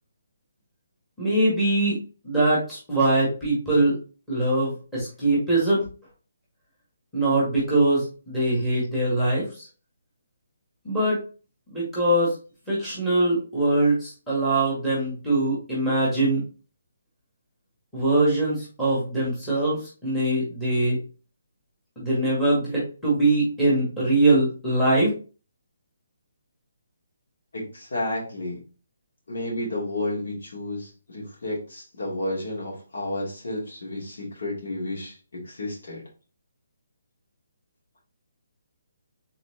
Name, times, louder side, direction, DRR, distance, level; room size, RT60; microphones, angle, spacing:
voice 1, 1.2-2.0 2.2-4.0 4.3-5.8 7.1-9.7 10.8-11.2 11.7-12.3 12.7-16.4 17.9-21.0 22.0-25.1, right 2 dB, 5° left, -8 dB, 1.7 m, -22 dB
voice 2, 27.5-28.6 29.3-36.0, left 1 dB, 65° left, -3 dB, 2.6 m, -31 dB
4.4 x 3.9 x 2.8 m, 0.34 s
hypercardioid pair, 175°, 0 cm